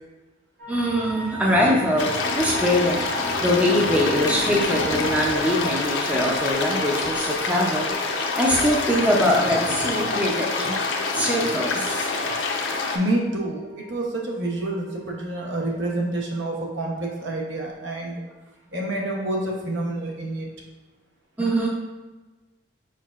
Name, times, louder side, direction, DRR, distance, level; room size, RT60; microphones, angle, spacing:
sound 1, 0.6-16.9 17.2-17.3, right 1 dB, 55° right, 1.3 m, -41 dB
voice 1, 0.7-8.0 8.3-10.8 11.1-12.1 21.4-21.7, equal, 10° right, -2 dB, 0.5 m, -23 dB
sound 2, 2.0-13.0, left 3 dB, 75° left, 0.6 m, -26 dB
voice 2, 12.9-18.2 18.7-20.5, right 1 dB, 75° right, -1 dB, 0.9 m, -28 dB
4.9 x 4.5 x 2.4 m, 1.2 s
head